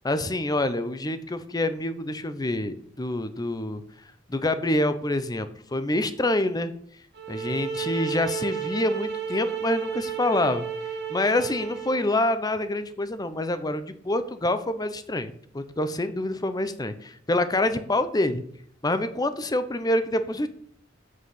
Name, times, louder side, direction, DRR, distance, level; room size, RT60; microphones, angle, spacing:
voice 1, 0.0-3.8 4.3-6.7 7.3-10.6 11.1-18.4 18.8-20.5, left 1 dB, 20° left, 11 dB, 0.7 m, -26 dB
sound 1, 7.1-12.1, right 7 dB, 60° right, 1.4 m, -32 dB
7.3 x 6.4 x 5.7 m, 0.62 s
head